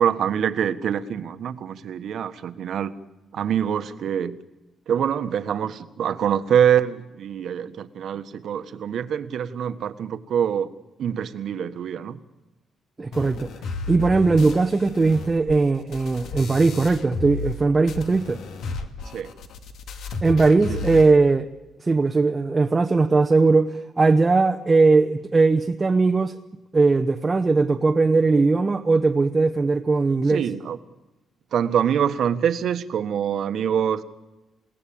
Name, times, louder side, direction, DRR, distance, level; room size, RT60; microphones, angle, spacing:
voice 1, 0.0-2.9 3.3-4.4 4.9-10.7 11.0-12.2 19.1-19.3 20.7-20.9 30.3-30.8 31.5-34.0, right 8 dB, 60° right, 1.3 m, -24 dB
voice 2, 13.0-13.5 13.9-18.4 20.2-21.5 21.8-26.4 26.7-30.4, right 3 dB, 20° right, 0.8 m, -19 dB
sound 1, 13.1-17.6 17.9-21.1, left 3 dB, 70° left, 2.3 m, -33 dB
29.0 x 17.5 x 8.7 m
cardioid pair, 160°, 0 cm